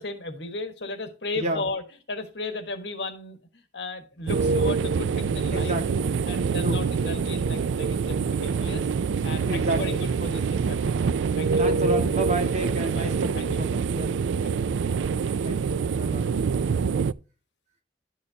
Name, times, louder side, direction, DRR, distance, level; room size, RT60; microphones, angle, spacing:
voice 1, 0.0-5.8 6.2-8.9 9.2-11.0 11.4-11.7 12.9-13.6 14.4-14.5 16.8-16.9, left 2 dB, 65° left, 1.5 m, -35 dB
sound 1, 4.3-17.1, right 5 dB, 85° right, 0.4 m, -25 dB
voice 2, 5.5-6.1 6.6-6.9 9.5-10.0 11.6-14.2 15.4-16.3, right 1 dB, 40° right, 1.9 m, -31 dB
11.5 x 6.5 x 2.8 m
head